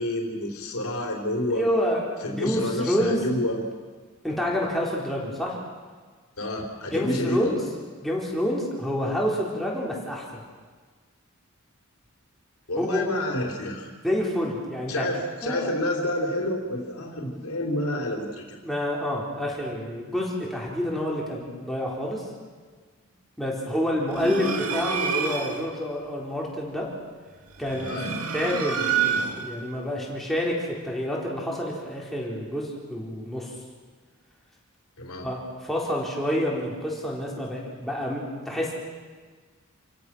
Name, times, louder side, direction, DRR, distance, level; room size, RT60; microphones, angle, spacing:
voice 1, 0.0-1.6 2.2-3.6 6.4-7.6 12.7-13.9 14.9-18.6 27.8-28.2 35.0-35.3, left 1 dB, 80° left, 1 dB, 3.7 m, -29 dB
voice 2, 1.5-3.2 4.2-5.6 6.9-7.5 8.0-10.2 12.8-13.0 14.0-15.1 15.4-15.7 18.6-22.2 23.4-26.9 27.6-28.0 28.3-33.5 35.2-38.7, equal, ahead, -4 dB, 4.0 m, -28 dB
sound 1, 24.1-25.7 27.6-29.6, right 6 dB, 85° right, 2.1 m, -28 dB
28.0 x 16.5 x 6.2 m, 1.5 s
head